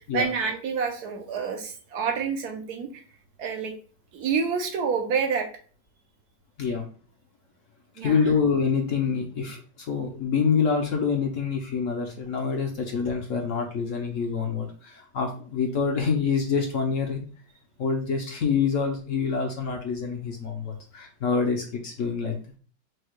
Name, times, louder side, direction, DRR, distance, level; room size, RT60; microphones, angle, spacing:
voice 1, 0.1-3.0 3.4-3.7 4.1-5.5 8.0-8.2, right 5 dB, 70° right, 4 dB, 1.2 m, -28 dB
voice 2, 8.0-17.2 17.8-22.4, left 5 dB, 60° left, 2 dB, 0.9 m, -26 dB
4.7 x 2.2 x 4.6 m, 0.40 s
omnidirectional pair, 1.8 m